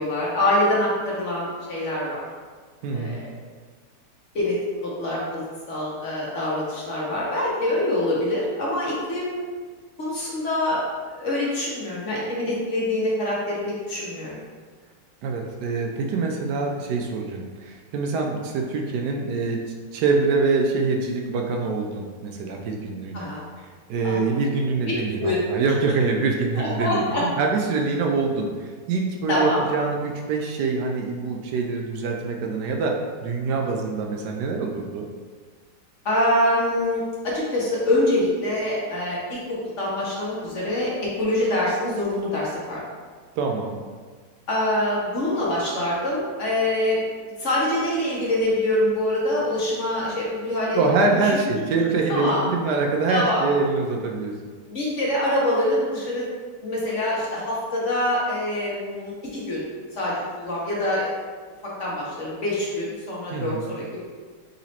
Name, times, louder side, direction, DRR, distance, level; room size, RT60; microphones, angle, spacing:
voice 1, 0.0-2.2 2.9-3.3 4.3-4.6 4.8-9.4 10.0-10.8 11.1-13.6 13.9-14.4 23.1-23.4 24.0-24.4 25.2-25.4 26.6-27.2 29.3-29.6 36.0-42.8 44.5-47.0 47.4-51.4 52.1-52.4 53.1-53.4 54.7-56.3 56.6-59.6 59.9-61.1 61.8-64.1, left 1 dB, 50° left, -5 dB, 1.2 m, -25 dB
voice 2, 2.8-3.2 15.2-19.6 19.9-23.3 23.6-35.1 43.4-43.8 50.7-54.5 63.3-63.7, right 4 dB, 75° right, 2 dB, 1.1 m, -25 dB
4.0 x 3.0 x 4.2 m, 1.6 s
omnidirectional pair, 1.8 m